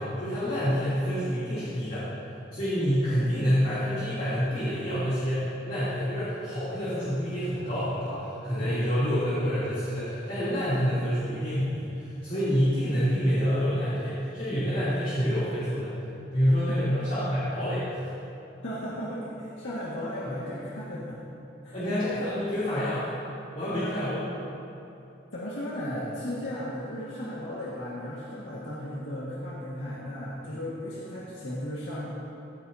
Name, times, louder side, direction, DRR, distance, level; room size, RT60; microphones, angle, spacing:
voice 1, 0.0-2.1 2.5-15.9 16.3-18.0 21.7-23.1 23.5-24.2 30.4-30.5, equal, 45° left, -13 dB, 3.1 m, -27 dB
voice 2, 18.6-21.3 21.6-22.0 23.7-24.1 25.3-32.0, equal, 85° left, -7 dB, 1.9 m, -35 dB
17.0 x 14.0 x 2.8 m, 2.8 s
head